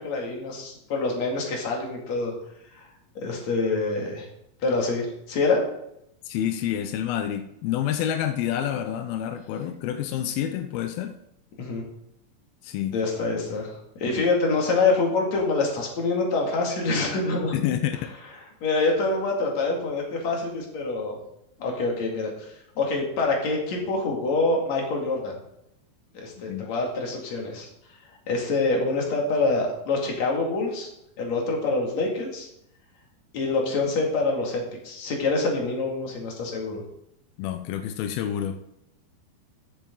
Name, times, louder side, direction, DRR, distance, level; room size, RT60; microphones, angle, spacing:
voice 1, 0.0-2.3 2.7-2.9 3.2-4.3 4.6-5.6 11.6-11.9 12.9-17.6 18.6-21.2 21.6-25.3 26.2-27.7 28.3-30.9 31.2-32.5 33.3-36.8, left 3 dB, 45° left, -1 dB, 3.0 m, -26 dB
voice 2, 6.3-11.2 12.6-13.0 17.5-18.0 26.5-26.7 37.4-38.6, left 10 dB, 90° left, 8 dB, 2.1 m, -28 dB
15.0 x 7.3 x 3.9 m, 0.79 s
omnidirectional pair, 5.2 m